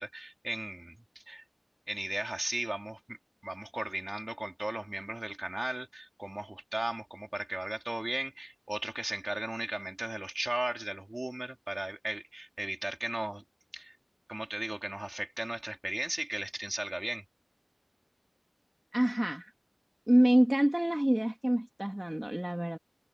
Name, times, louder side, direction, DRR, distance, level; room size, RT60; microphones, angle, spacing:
voice 1, 0.0-1.4 1.9-3.2 3.4-13.4 13.7-13.9 14.3-17.2, right 1 dB, 35° right, 4.5 m, -36 dB
voice 2, 18.9-19.5 20.1-22.8, right 1 dB, 20° right, 2.4 m, -26 dB
wide cardioid pair, 45°, 0 cm